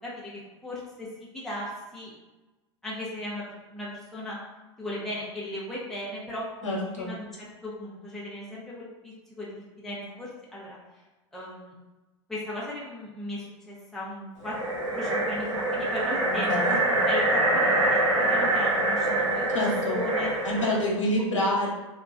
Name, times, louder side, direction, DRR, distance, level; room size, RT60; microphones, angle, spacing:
voice 1, 0.0-2.1 2.8-4.4 4.8-10.8 11.3-11.7 12.3-14.5 14.9-16.8 17.0-19.5 19.9-20.3, left 1 dB, ahead, -7 dB, 0.8 m, -37 dB
voice 2, 6.6-7.1 16.3-16.7 19.5-20.0 20.4-21.7, left 1 dB, 80° left, -3 dB, 0.9 m, -27 dB
sound 1, 14.4-20.9, right 2 dB, 85° right, 0.7 m, -25 dB
2.9 x 2.4 x 2.5 m, 1.1 s
hypercardioid pair, 95°, 16 cm